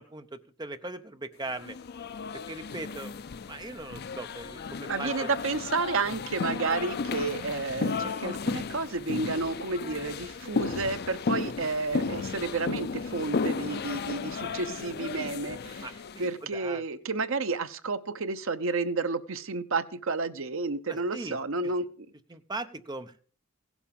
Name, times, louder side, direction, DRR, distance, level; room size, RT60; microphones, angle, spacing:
voice 1, 0.0-1.8 2.5-3.1 3.5-5.3 15.8-16.8 20.9-21.4 22.3-23.2, right 2 dB, 20° right, 9 dB, 0.8 m, -39 dB
sound 1, 1.6-16.3, left 4 dB, 50° left, 0.5 m, -34 dB
voice 2, 4.9-15.9 16.2-22.1, right 3 dB, 70° right, 11 dB, 0.8 m, -31 dB
16.5 x 7.2 x 5.3 m, 0.43 s
head